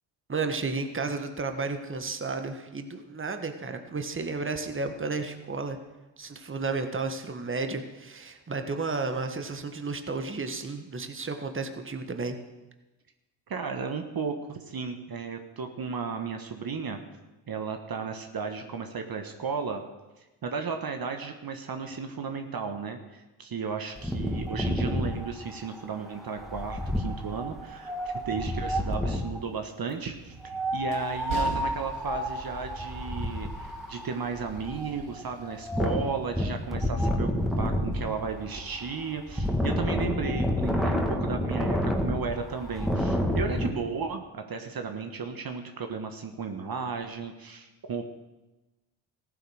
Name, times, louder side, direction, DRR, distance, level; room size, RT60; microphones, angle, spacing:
voice 1, 0.3-5.8 6.2-12.3, right 4 dB, 25° right, 6 dB, 1.6 m, -32 dB
voice 2, 13.5-17.0 17.5-19.8 20.2-28.0 28.2-48.0, right 5 dB, 45° right, 5 dB, 1.5 m, -34 dB
Wind, 24.0-29.4 30.4-43.7, equal, ahead, 2.4 m, -30 dB
Train, 30.1-38.7, right 4 dB, 75° right, 2.6 m, -44 dB
15.0 x 9.4 x 6.4 m, 1.1 s
supercardioid pair, 60°, 49 cm